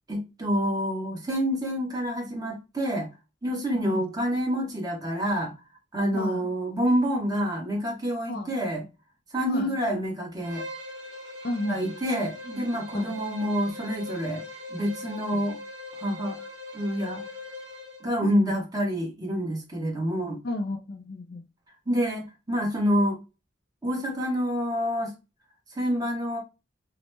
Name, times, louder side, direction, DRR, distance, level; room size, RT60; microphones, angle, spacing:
voice 1, 0.1-3.1 3.4-5.5 5.9-8.8 9.3-10.6 11.7-14.4 14.7-15.6 16.0-16.4 16.7-17.2 18.0-20.4 21.9-23.2 23.8-25.1 25.7-26.4, equal, 20° right, 0.9 m, -27 dB
voice 2, 3.7-4.0 6.1-6.5 8.3-8.5 9.5-9.8 11.4-11.9 12.9-13.2 15.3-15.5 18.2-18.5 20.4-21.5, left 1 dB, 50° left, 0.4 m, -32 dB
Bowed string instrument, 10.4-18.1, left 2 dB, 60° right, 1.6 m, -41 dB
2.9 x 2.0 x 3.2 m
head